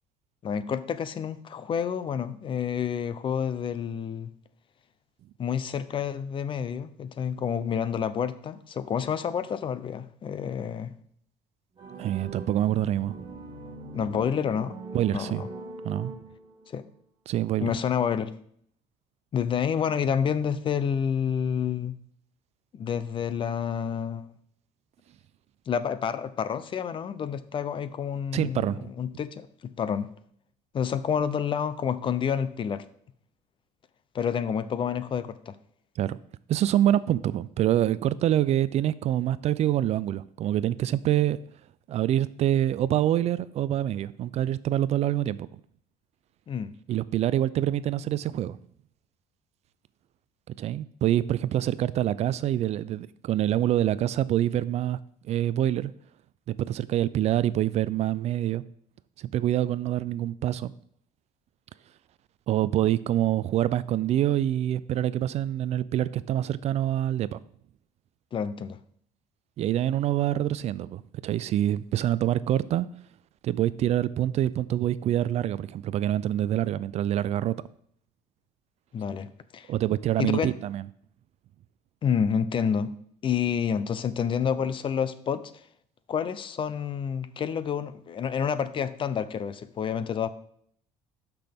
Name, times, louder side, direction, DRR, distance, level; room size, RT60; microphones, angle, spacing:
voice 1, 0.4-4.3 5.4-10.9 13.9-14.8 15.1-15.5 16.7-16.8 17.6-18.3 19.3-21.9 22.7-24.3 25.7-29.5 29.8-30.1 30.7-32.8 34.1-35.5 46.5-46.7 68.3-68.8 78.9-79.3 79.5-79.7 80.2-80.5 82.0-82.9 83.2-85.4 86.1-90.3, left 7 dB, 35° left, 14 dB, 0.6 m, -29 dB
sound 1, 11.8-16.7, right 3 dB, 30° right, 1.8 m, -41 dB
voice 2, 12.0-13.3 14.9-15.4 15.8-16.1 17.3-17.7 28.3-28.9 36.0-36.2 36.5-41.4 41.9-45.5 46.9-48.6 50.6-55.0 55.3-55.9 56.6-58.6 59.2-60.7 62.5-67.4 69.6-72.9 73.4-77.6 79.7-80.9, right 12 dB, 45° right, 17 dB, 0.4 m, -26 dB
11.5 x 6.0 x 3.5 m, 0.64 s
cardioid pair, 120°, 15 cm